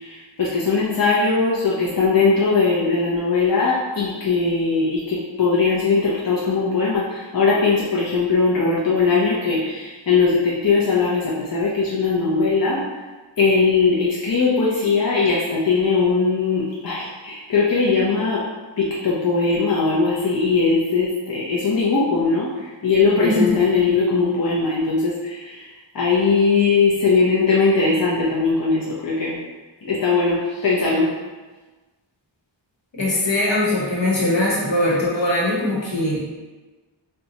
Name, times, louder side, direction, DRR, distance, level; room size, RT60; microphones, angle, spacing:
voice 1, 0.4-12.8 13.4-18.4 18.8-22.5 22.8-25.6 25.9-29.4 29.8-31.1, left 4 dB, 50° left, -6 dB, 0.6 m, -20 dB
voice 2, 23.2-23.5 33.0-36.2, left 1 dB, 70° left, -6 dB, 1.1 m, -21 dB
2.7 x 2.3 x 4.0 m, 1.3 s
wide cardioid pair, 85°, 45 cm